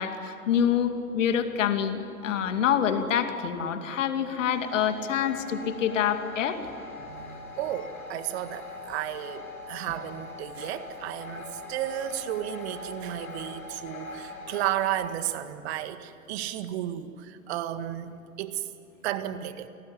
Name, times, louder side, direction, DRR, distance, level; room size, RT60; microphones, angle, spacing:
voice 1, 0.0-6.6, left 8 dB, 60° left, 7 dB, 2.6 m, -26 dB
sound 1, 4.5-15.0, left 3 dB, 85° left, 6.6 m, -42 dB
voice 2, 7.1-18.7 19.0-19.7, right 12 dB, 45° right, 10 dB, 1.9 m, -33 dB
29.0 x 19.0 x 9.8 m, 2.8 s
figure-of-eight pair, 110°, 43 cm